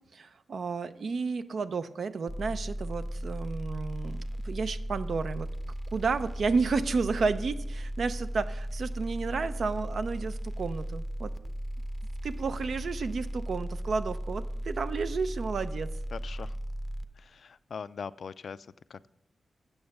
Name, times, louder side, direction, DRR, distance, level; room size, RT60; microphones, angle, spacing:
voice 1, 0.1-5.5 5.9-11.5 12.2-15.9, right 4 dB, 70° right, 11 dB, 0.6 m, -32 dB
sound 1, 2.3-17.0, equal, 5° left, 0.6 m, -36 dB
voice 2, 16.1-16.6 17.1-19.1, left 6 dB, 65° left, 17 dB, 0.3 m, -41 dB
8.8 x 7.0 x 6.5 m, 0.84 s
cardioid pair, 90°, 0 cm